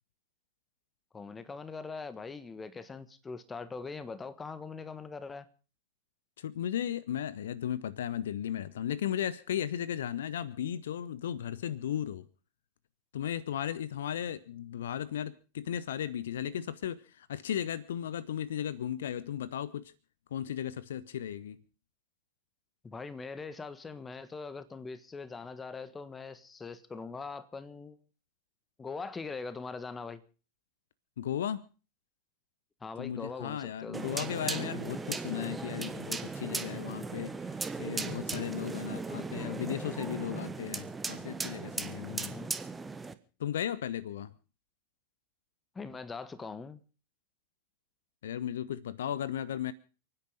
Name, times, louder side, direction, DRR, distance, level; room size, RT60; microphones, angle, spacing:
voice 1, 1.1-5.5 22.8-28.0 28.8-30.2 32.8-34.1 42.1-42.5 45.7-46.8, left 4 dB, 15° left, 1.4 m, -42 dB
voice 2, 6.4-12.3 13.1-19.9 20.3-21.6 31.2-31.6 33.0-37.4 37.8-42.3 43.4-44.3 48.2-49.7, left 10 dB, 60° left, 0.7 m, -35 dB
sound 1, 33.9-43.1, right 4 dB, 10° right, 1.2 m, -37 dB
29.5 x 9.9 x 3.9 m
figure-of-eight pair, 90°, 0 cm